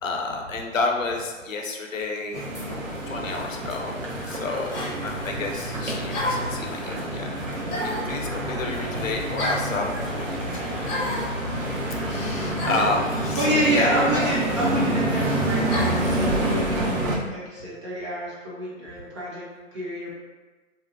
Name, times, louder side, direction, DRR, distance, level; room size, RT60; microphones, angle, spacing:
voice 1, 0.0-2.4 3.1-11.3 12.1-14.0, left 3 dB, 85° left, 1 dB, 0.6 m, -30 dB
sound 1, 2.3-17.2, right 1 dB, 90° right, 0.7 m, -28 dB
sound 2, 3.3-3.5 4.7-5.0 6.1-6.5 7.7-8.1 9.4-9.7 10.8-11.3 12.6-12.9 14.1-14.4 15.7-16.0, left 1 dB, 35° left, 0.8 m, -29 dB
voice 2, 12.3-12.7 13.3-20.1, right 1 dB, 25° right, -7 dB, 0.5 m, -28 dB
2.6 x 2.1 x 2.4 m, 1.3 s
figure-of-eight pair, 135°, 39 cm